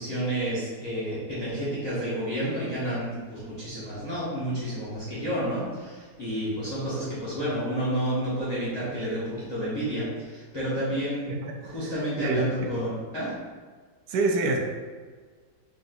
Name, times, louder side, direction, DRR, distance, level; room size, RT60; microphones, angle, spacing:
voice 1, 0.0-11.3 11.6-13.3, right 1 dB, 30° left, -10 dB, 1.0 m, -30 dB
voice 2, 12.2-12.8 14.1-14.6, right 3 dB, 80° right, 2 dB, 1.1 m, -26 dB
3.9 x 3.7 x 2.5 m, 1.5 s
omnidirectional pair, 1.8 m